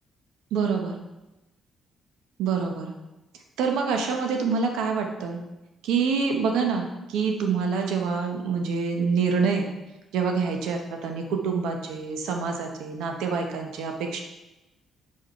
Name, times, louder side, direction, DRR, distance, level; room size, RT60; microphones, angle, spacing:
voice 1, 0.5-1.0 2.4-2.9 3.6-5.4 5.8-9.7 10.1-14.2, right 5 dB, 90° right, 3 dB, 1.1 m, -26 dB
6.7 x 5.0 x 5.6 m, 1.0 s
cardioid pair, 90°, 0 cm